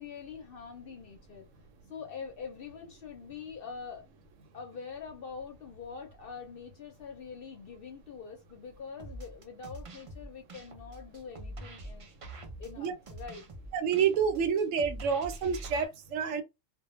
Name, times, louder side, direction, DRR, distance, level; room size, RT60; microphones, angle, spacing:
voice 1, 0.0-1.5 1.9-4.1 4.5-12.1 12.6-13.4, left 6 dB, 60° left, 0.6 m, -44 dB
sound 1, 9.0-15.8, right 1 dB, 60° right, 0.3 m, -45 dB
voice 2, 13.7-16.4, right 6 dB, 80° right, 0.9 m, -28 dB
2.2 x 2.1 x 3.0 m
omnidirectional pair, 1.3 m